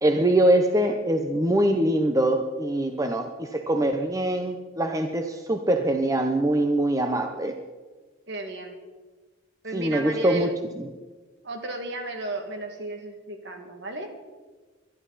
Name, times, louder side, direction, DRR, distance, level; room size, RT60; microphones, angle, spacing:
voice 1, 0.0-7.6 9.7-10.9, right 1 dB, 15° right, 5 dB, 0.7 m, -23 dB
voice 2, 8.3-8.8 9.6-10.5 11.4-14.1, right 1 dB, 55° right, 4 dB, 2.2 m, -34 dB
23.5 x 12.0 x 4.2 m, 1.4 s
head